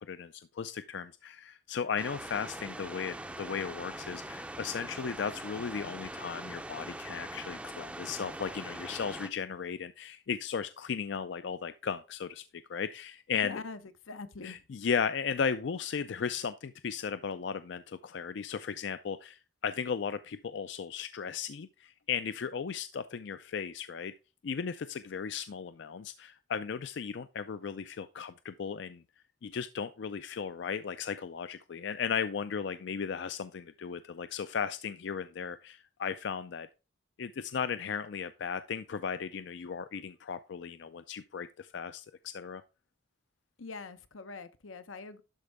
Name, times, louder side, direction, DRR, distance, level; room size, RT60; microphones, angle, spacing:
voice 1, 0.0-12.4 12.7-13.6 14.4-24.1 24.4-29.0 29.4-36.7 37.2-42.6, left 6 dB, 65° left, 0.4 m, -36 dB
sound 1, 2.0-9.3, right 1 dB, 5° right, 0.5 m, -42 dB
voice 2, 13.4-13.8 14.1-14.6 43.6-45.2, left 4 dB, 85° left, 0.8 m, -43 dB
12.0 x 4.5 x 3.4 m
head